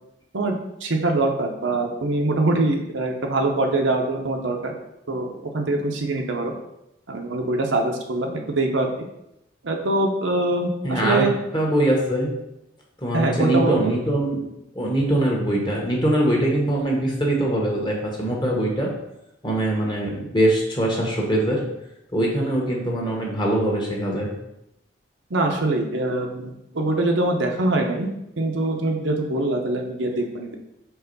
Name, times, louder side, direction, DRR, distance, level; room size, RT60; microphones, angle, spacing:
voice 1, 0.3-4.7 5.1-5.3 5.5-6.5 7.1-8.9 9.6-11.3 13.1-13.9 25.3-28.1 28.4-30.5, right 2 dB, 80° right, 2 dB, 0.9 m, -23 dB
voice 2, 10.8-11.3 11.5-12.3 13.0-14.4 14.7-18.9 19.4-21.6 22.1-24.3, right 1 dB, 25° left, -1 dB, 1.3 m, -22 dB
4.6 x 3.7 x 5.4 m, 0.86 s
head